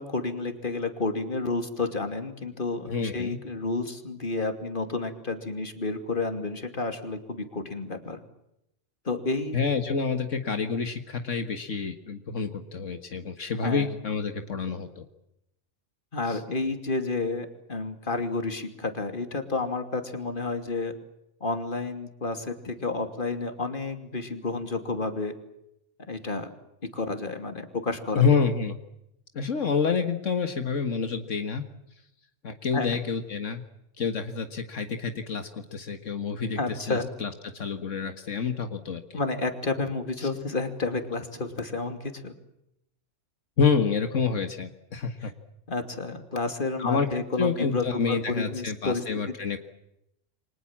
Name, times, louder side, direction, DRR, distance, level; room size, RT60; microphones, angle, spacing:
voice 1, 0.0-8.2 9.0-9.6 13.6-13.9 16.1-20.9 21.4-25.3 26.1-26.5 26.8-28.2 32.7-33.0 36.6-37.1 39.1-42.4 45.7-49.0, left 3 dB, 45° left, 7 dB, 2.9 m, -30 dB
voice 2, 2.9-3.4 9.5-15.0 16.3-16.4 28.2-28.8 29.3-31.7 32.4-33.6 34.0-39.2 40.2-40.3 43.6-45.3 46.8-47.1 47.4-49.6, left 5 dB, 80° left, 7 dB, 2.0 m, -28 dB
29.0 x 25.0 x 7.4 m, 0.83 s
omnidirectional pair, 1.3 m